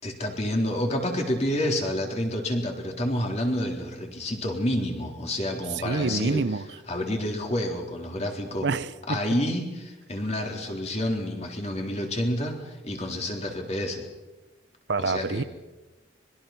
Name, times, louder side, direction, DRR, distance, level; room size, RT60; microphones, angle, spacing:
voice 1, 0.0-6.4 6.9-8.7 9.1-14.1 15.0-15.5, left 1 dB, 35° left, 3.8 m, -29 dB
voice 2, 5.8-6.6 8.6-9.2 14.9-15.4, right 4 dB, 60° right, 0.7 m, -27 dB
25.5 x 22.0 x 5.9 m
head